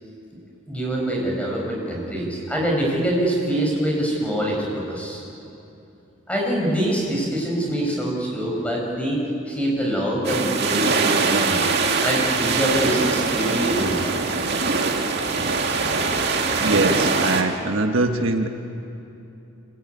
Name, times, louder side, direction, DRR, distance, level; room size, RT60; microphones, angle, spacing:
voice 1, 0.7-5.2 6.3-9.2 9.5-11.7 12.0-14.1, right 1 dB, 5° left, -2 dB, 6.1 m, -24 dB
sound 1, 10.2-17.4, right 4 dB, 50° right, 2.1 m, -22 dB
voice 2, 16.6-18.5, right 2 dB, 65° right, 4 dB, 1.4 m, -22 dB
25.5 x 21.5 x 9.6 m, 2.7 s
head